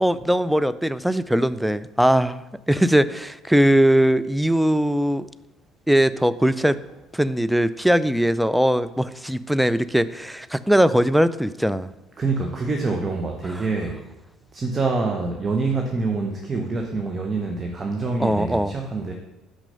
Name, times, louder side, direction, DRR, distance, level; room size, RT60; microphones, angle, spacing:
voice 1, 0.0-2.4 2.7-5.3 5.9-6.8 7.1-11.9 18.2-18.7, equal, ahead, 14 dB, 0.3 m, -20 dB
voice 2, 12.2-14.0 14.5-19.1, right 3 dB, 35° right, 2 dB, 0.9 m, -26 dB
6.0 x 5.6 x 5.2 m, 0.99 s
figure-of-eight pair, 55°, 0 cm